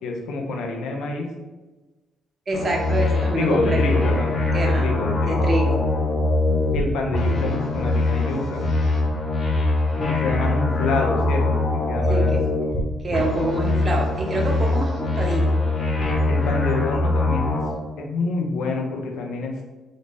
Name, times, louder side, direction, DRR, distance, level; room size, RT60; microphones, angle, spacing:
voice 1, 0.0-1.3 3.3-4.3 4.6-5.5 6.7-8.6 10.0-12.3 16.3-17.6 18.0-19.6, left 3 dB, 85° left, 1 dB, 0.6 m, -27 dB
sound 1, 2.5-6.8 7.1-12.8 13.1-17.7, left 2 dB, 40° left, 1.0 m, -22 dB
voice 2, 2.5-3.8 4.5-4.9 5.3-5.8 12.1-12.4 13.0-15.6, right 1 dB, 35° right, 0 dB, 0.8 m, -26 dB
3.8 x 2.1 x 3.4 m, 1.2 s
cardioid pair, 90°, 0 cm